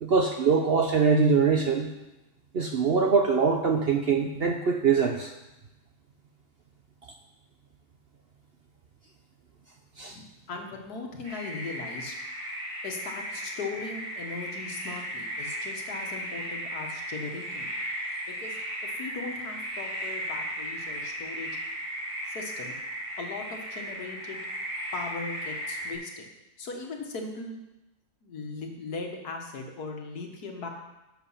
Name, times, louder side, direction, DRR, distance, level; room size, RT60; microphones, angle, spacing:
voice 1, 0.0-1.9 2.5-5.3 10.0-10.2, right 5 dB, 55° right, 4 dB, 0.7 m, -23 dB
voice 2, 10.1-12.2 12.8-17.8 18.3-21.6 22.3-22.8 23.2-24.4 24.9-26.3 26.6-27.6 28.2-30.7, left 4 dB, 75° left, 2 dB, 1.9 m, -38 dB
sound 1, 11.2-25.9, equal, 75° right, 3.1 m, -36 dB
10.5 x 7.2 x 5.6 m, 0.98 s
omnidirectional pair, 1.7 m